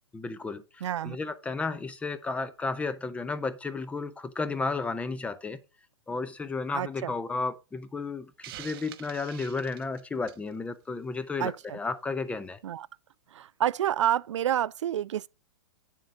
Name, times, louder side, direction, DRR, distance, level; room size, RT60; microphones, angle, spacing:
voice 1, 0.1-5.6 6.1-12.6, left 3 dB, 10° left, 0.7 m, -33 dB
voice 2, 0.8-1.2 6.7-7.1 11.4-11.8 12.6-12.9 13.3-15.3, right 11 dB, 85° right, 0.4 m, -29 dB
Hiss, 8.4-10.5, right 13 dB, 55° right, 0.9 m, -45 dB
9.3 x 7.3 x 3.8 m
hypercardioid pair, 140°, 15 cm